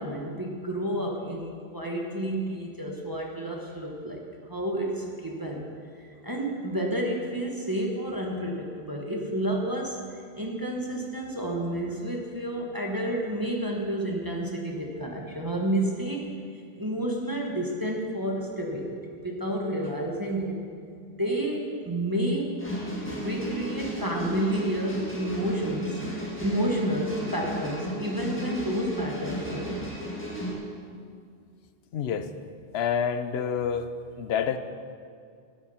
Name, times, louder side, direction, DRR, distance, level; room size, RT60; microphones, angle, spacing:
voice 1, 0.0-5.7 6.0-10.0 10.3-16.2 16.7-20.5 21.1-22.5 23.0-26.1 26.4-29.7, right 1 dB, 20° right, -1 dB, 1.2 m, -30 dB
sound 1, 22.6-30.6, equal, 10° left, 1.8 m, -34 dB
voice 2, 31.9-32.3 32.7-33.9 34.2-34.6, left 7 dB, 75° left, 10 dB, 0.9 m, -27 dB
9.7 x 9.3 x 5.7 m, 2.3 s
omnidirectional pair, 1.1 m